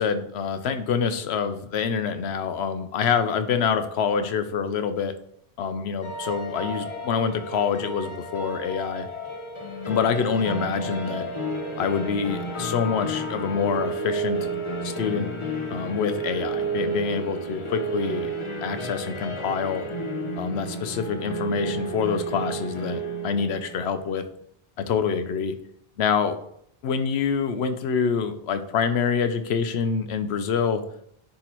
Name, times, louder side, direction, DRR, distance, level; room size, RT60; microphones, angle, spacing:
voice 1, 0.0-5.1 5.6-9.1 9.9-11.3 11.8-14.5 14.8-15.3 15.7-18.3 18.6-19.8 20.4-24.3 24.8-25.5 26.0-26.4 26.8-30.8, left 6 dB, 80° left, 9 dB, 0.9 m, -26 dB
sound 1, 6.0-24.1, right 2 dB, 35° left, 0.7 m, -32 dB
10.0 x 3.8 x 3.0 m, 0.69 s
omnidirectional pair, 1.1 m